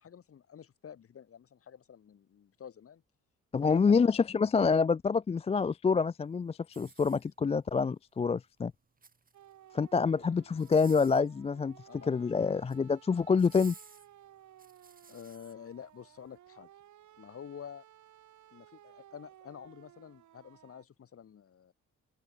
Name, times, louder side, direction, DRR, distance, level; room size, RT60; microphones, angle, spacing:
voice 1, 0.0-3.0 3.6-4.1 10.1-10.2 11.9-12.3 15.1-16.7 17.2-17.8 18.5-21.7, left 8 dB, 50° left, 1.8 m, -49 dB
voice 2, 3.5-8.7 9.7-11.7 12.1-13.7, left 5 dB, 20° left, 0.4 m, -27 dB
sound 1, 6.6-7.7 8.8-9.6 10.5-11.3 12.4-12.8 13.4-15.5 16.1-16.3, right 4 dB, 30° right, 3.1 m, -55 dB
sound 2, 9.3-20.8, right 12 dB, 75° right, 2.1 m, -58 dB
open air
cardioid pair, 100°, 30 cm